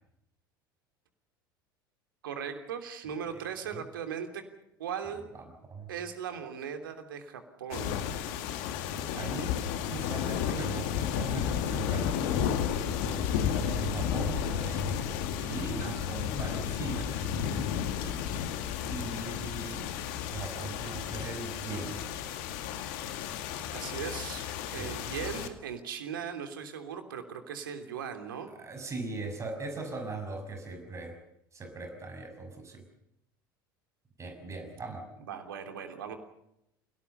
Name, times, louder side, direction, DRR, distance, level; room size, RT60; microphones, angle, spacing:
voice 1, 2.2-4.5 4.8-5.2 5.9-8.0 23.7-28.5 35.2-36.2, right 7 dB, 70° right, 7 dB, 3.1 m, -38 dB
sound 1, 7.7-25.5, left 8 dB, 55° left, 2.2 m, -32 dB
voice 2, 9.1-9.6 9.9-12.7 13.0-14.9 15.4-17.4 18.9-22.0 24.6-24.9 28.6-31.2 31.5-32.8 34.2-35.1, right 3 dB, 25° right, 5 dB, 6.2 m, -40 dB
28.5 x 18.0 x 6.9 m, 0.79 s
figure-of-eight pair, 70°, 12 cm